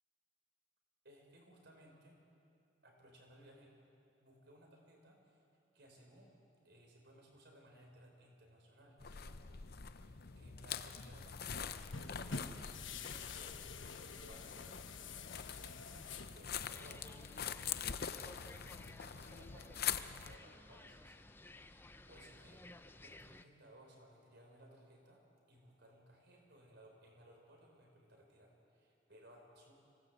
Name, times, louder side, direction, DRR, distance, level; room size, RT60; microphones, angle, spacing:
voice 1, 1.0-2.2 2.8-3.7 4.2-5.4 5.7-6.3 6.6-12.6 12.9-13.7 14.0-22.6 23.0-25.2 25.5-29.7, right 1 dB, 55° right, 1 dB, 4.6 m, -62 dB
sound 1, 9.0-20.4, left 8 dB, 45° left, 0.7 m, -44 dB
sound 2, 10.8-16.4, left 4 dB, 65° left, 1.2 m, -49 dB
sound 3, 16.7-23.5, left 2 dB, 10° left, 0.5 m, -56 dB
25.0 x 18.0 x 8.2 m, 2.6 s
head